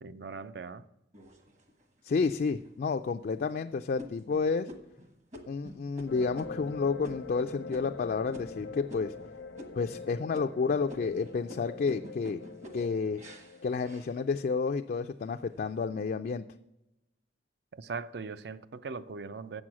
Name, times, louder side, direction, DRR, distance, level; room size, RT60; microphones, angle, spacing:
voice 1, 0.0-0.8 17.7-19.6, right 4 dB, 60° right, 0.4 m, -40 dB
sound 1, 1.1-2.0 2.6-2.7 3.2-3.5 4.0-9.3 9.6-10.1 10.3-14.7 15.1-15.7, left 1 dB, 40° right, 1.2 m, -49 dB
voice 2, 2.0-4.7 5.5-9.1 9.8-12.4 12.7-13.2 13.6-16.4, left 4 dB, 50° left, 0.3 m, -30 dB
sound 2, 6.1-14.6, left 4 dB, 90° left, 0.8 m, -44 dB
7.7 x 6.2 x 7.3 m
head